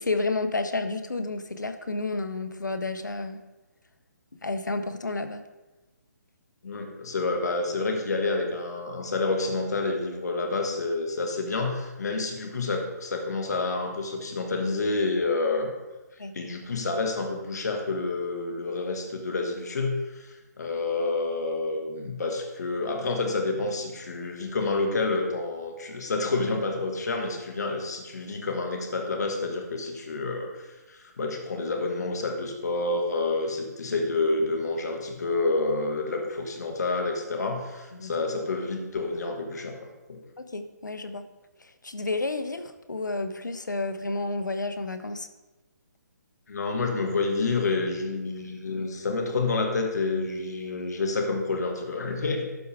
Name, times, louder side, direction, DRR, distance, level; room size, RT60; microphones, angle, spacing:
voice 1, 0.0-3.4 4.4-5.4 16.2-16.3 33.9-34.0 38.0-38.1 40.4-41.2 41.6-45.3, left 3 dB, 90° left, 9 dB, 0.8 m, -31 dB
voice 2, 6.6-15.7 16.3-39.8 40.1-40.2 46.5-52.5, left 3 dB, 65° left, 3 dB, 1.6 m, -29 dB
12.0 x 4.7 x 3.4 m, 1.1 s
figure-of-eight pair, 145°, 10 cm